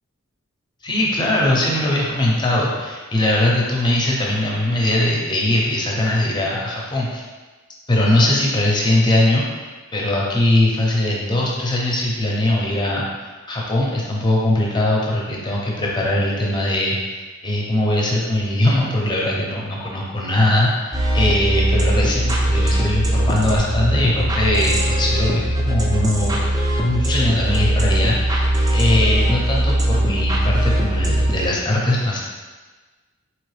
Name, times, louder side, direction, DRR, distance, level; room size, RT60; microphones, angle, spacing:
voice 1, 0.8-7.2 7.9-9.6 9.9-26.4 26.8-32.2, left 1 dB, 20° left, -3 dB, 0.6 m, -20 dB
sound 1, 20.9-31.5, right 1 dB, 15° right, 0.4 m, -20 dB
3.9 x 3.0 x 3.2 m, 1.3 s
head